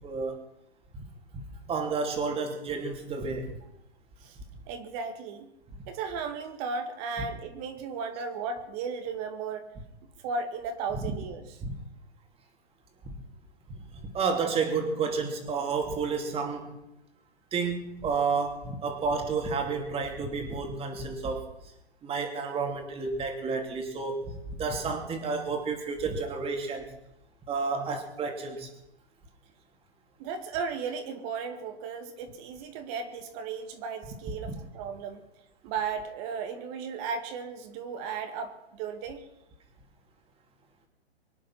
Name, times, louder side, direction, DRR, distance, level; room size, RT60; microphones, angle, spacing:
voice 1, 0.0-0.4 0.9-1.1 1.3-3.5 11.0-11.1 11.6-11.8 13.0-13.2 13.7-16.8 17.5-21.5 22.0-26.9 27.5-28.7 34.4-34.5, right 4 dB, 15° right, 4 dB, 2.9 m, -31 dB
voice 2, 4.7-5.5 5.9-9.7 10.2-11.6 30.2-35.2 35.6-39.2, right 5 dB, 35° right, 7 dB, 2.1 m, -35 dB
24.0 x 10.0 x 6.0 m, 0.90 s
hypercardioid pair, 130°, 33 cm